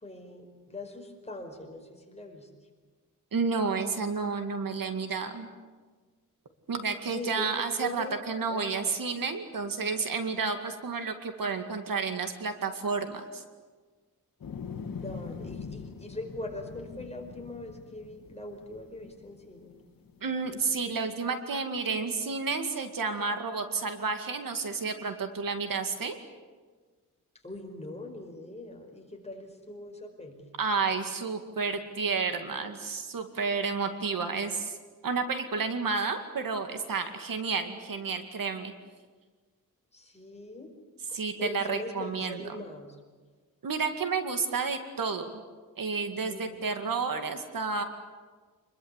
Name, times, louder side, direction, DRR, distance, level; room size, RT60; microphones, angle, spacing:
voice 1, 0.0-2.5 7.1-7.5 7.8-8.2 8.5-8.9 15.0-19.7 27.4-30.5 39.9-40.7 41.1-43.0 46.2-46.6, left 2 dB, 20° left, 2 dB, 5.0 m, -41 dB
voice 2, 3.3-5.5 6.7-13.4 20.2-26.2 30.6-34.7 35.0-38.7 41.1-42.6 43.6-45.3 45.8-47.8, right 4 dB, 75° right, 7 dB, 2.2 m, -31 dB
sound 1, 14.4-21.0, left 5 dB, 75° left, 2.0 m, -43 dB
26.5 x 21.5 x 8.3 m, 1.4 s
wide cardioid pair, 120°, 34 cm